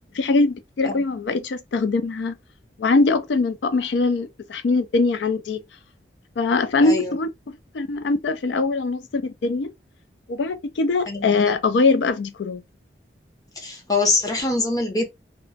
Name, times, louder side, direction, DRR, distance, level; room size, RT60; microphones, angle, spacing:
voice 1, 0.1-2.4 2.8-5.6 6.4-9.7 10.3-12.6, left 3 dB, 85° left, 0.4 m, -22 dB
voice 2, 6.8-7.1 11.1-11.5 13.6-15.1, left 3 dB, 20° left, 0.8 m, -24 dB
2.9 x 2.1 x 2.6 m
head